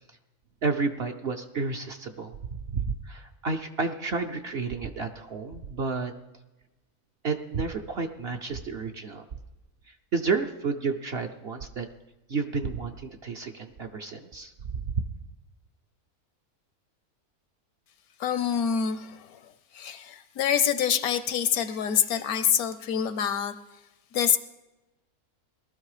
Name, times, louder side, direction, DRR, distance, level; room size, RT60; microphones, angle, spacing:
voice 1, 0.6-2.3 2.7-6.1 7.2-9.3 10.1-11.9 12.3-14.8, right 4 dB, 55° right, 5 dB, 0.8 m, -31 dB
voice 2, 18.2-19.4 19.7-23.5 24.1-24.4, left 8 dB, 75° left, 12 dB, 1.2 m, -26 dB
19.0 x 12.5 x 4.9 m, 1.1 s
omnidirectional pair, 1.6 m